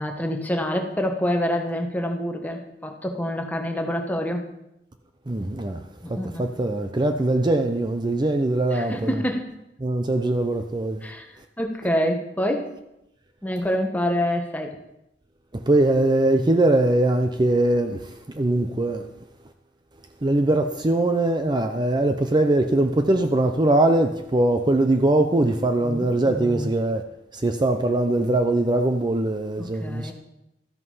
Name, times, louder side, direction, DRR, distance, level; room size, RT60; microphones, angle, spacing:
voice 1, 0.0-4.5 6.0-6.5 8.7-9.6 11.0-11.3 11.6-12.7 13.4-14.8 25.8-26.7 29.6-30.1, equal, 10° left, 1.3 m, -27 dB
voice 2, 5.3-5.8 6.1-9.2 9.8-11.1 15.7-19.1 20.2-27.0 27.3-30.1, right 2 dB, 25° right, 0.6 m, -21 dB
13.0 x 8.1 x 5.6 m
head